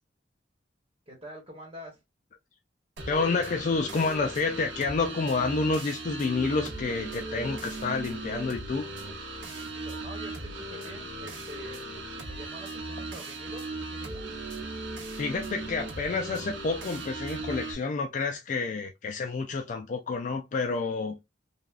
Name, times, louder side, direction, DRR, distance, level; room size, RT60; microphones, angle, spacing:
voice 1, 1.1-2.0 9.5-11.9 12.2-14.4, equal, 30° right, 1.1 m, -46 dB
sound 1, 3.0-17.7, right 2 dB, 75° right, 0.9 m, -38 dB
voice 2, 3.1-8.9 15.2-21.2, left 4 dB, 40° left, 0.3 m, -29 dB
3.3 x 2.3 x 2.4 m
head